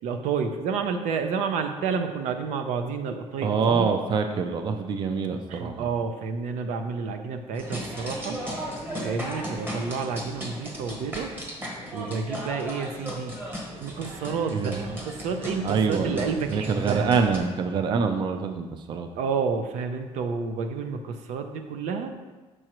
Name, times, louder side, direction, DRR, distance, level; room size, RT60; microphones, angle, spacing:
voice 1, 0.0-3.9 5.5-8.4 9.0-11.3 11.9-13.4 13.8-17.1 19.2-22.1, right 5 dB, 90° right, 7 dB, 0.6 m, -30 dB
voice 2, 3.4-5.9 14.5-14.8 15.6-16.2 16.5-19.1, right 5 dB, 40° right, 6 dB, 0.4 m, -25 dB
sound 1, 7.5-17.4, equal, 15° right, 1.0 m, -36 dB
6.5 x 6.2 x 3.0 m, 1.3 s
cardioid pair, 160°, 12 cm